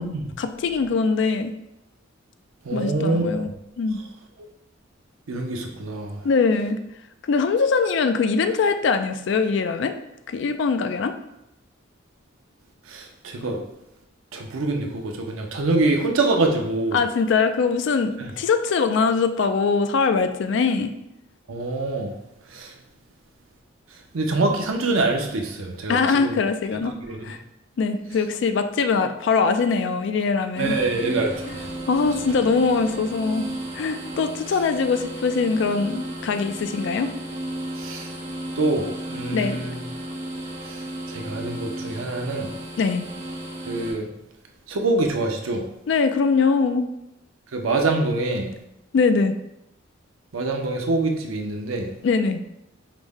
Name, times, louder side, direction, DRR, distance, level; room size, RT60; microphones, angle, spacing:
voice 1, 0.4-1.5 2.7-3.5 3.8-4.0 6.2-6.8 7.3-9.9 10.3-11.1 16.9-20.9 25.9-26.9 27.2-27.4 27.8-30.8 31.5-31.6 31.9-33.5 33.7-37.1 39.3-39.6 42.8-43.1 45.9-46.9 48.9-49.4 52.0-52.4, left 4 dB, 60° left, 8 dB, 0.3 m, -22 dB
voice 2, 2.7-3.4 5.3-6.1 12.9-13.6 14.3-17.0 21.5-22.1 22.5-22.7 24.1-26.0 26.2-26.4 27.1-27.2 30.6-31.5 37.8-38.1 38.6-39.8 41.1-42.5 43.7-44.1 44.7-45.6 47.5-48.5 50.3-51.9, right 2 dB, 90° right, 2 dB, 0.6 m, -25 dB
sound 1, 30.5-43.9, right 1 dB, 35° right, 1.0 m, -34 dB
4.9 x 2.1 x 3.4 m, 0.87 s
head